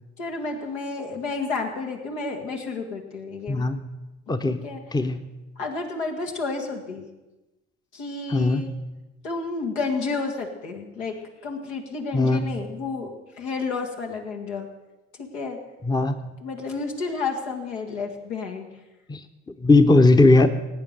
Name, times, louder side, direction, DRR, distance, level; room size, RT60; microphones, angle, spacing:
voice 1, 0.2-3.7 4.5-4.8 5.6-7.1 7.9-8.7 9.2-11.2 11.4-14.7 15.2-15.6 16.4-18.7, left 4 dB, 75° left, 2 dB, 2.1 m, -31 dB
voice 2, 3.5-3.8 4.3-4.6 4.9-5.3 8.3-8.8 12.1-12.6 15.8-16.3 19.1-19.2 19.6-20.5, left 2 dB, 10° left, 9 dB, 0.9 m, -19 dB
17.5 x 9.3 x 6.7 m, 1.1 s
figure-of-eight pair, 55°, 34 cm